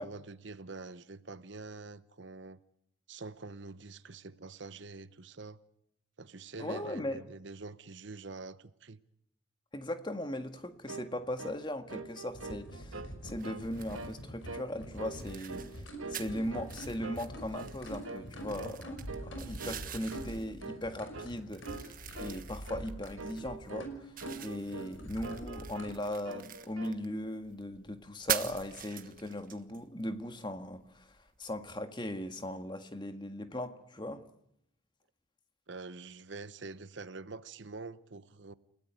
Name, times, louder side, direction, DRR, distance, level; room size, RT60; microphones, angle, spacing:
voice 1, 0.0-2.6 3.1-5.6 6.2-9.0 35.7-38.5, right 3 dB, 60° right, 0.9 m, -46 dB
voice 2, 6.6-7.2 9.7-19.0 19.2-34.2, left 1 dB, 20° left, 1.7 m, -39 dB
sound 1, 10.9-11.1 11.4-11.6 11.9-13.1 13.4-13.7 13.9-14.2 14.5-14.7 15.0-15.7 16.0-16.8 17.0-17.3 17.5-17.8 18.0-18.3 18.6-18.8 19.1-19.3 19.6-19.8 20.1-20.3 20.6-20.9 21.1-21.3 21.7-21.9 22.2-22.4 22.7-22.9 23.2-23.9 24.2-25.0 25.2-26.0 26.3-27.0, right 3 dB, 80° right, 1.9 m, -44 dB
sound 2, 12.3-25.9, equal, 70° left, 5.9 m, -45 dB
sound 3, 13.4-31.8, right 9 dB, 40° right, 1.5 m, -44 dB
30.0 x 17.5 x 9.5 m
head